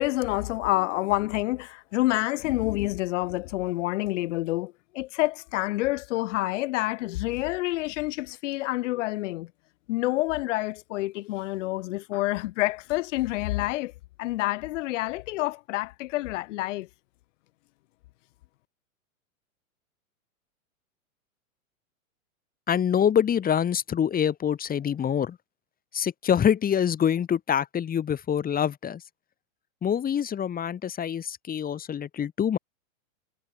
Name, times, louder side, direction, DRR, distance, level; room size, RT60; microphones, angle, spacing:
voice 1, 0.0-9.5 9.9-13.9 14.2-16.9, left 18 dB, 60° left, 1.7 m, -28 dB
voice 2, 22.7-25.4 25.9-29.0 29.8-32.6, left 8 dB, 20° left, 2.4 m, -25 dB
hypercardioid pair, 120°, 42 cm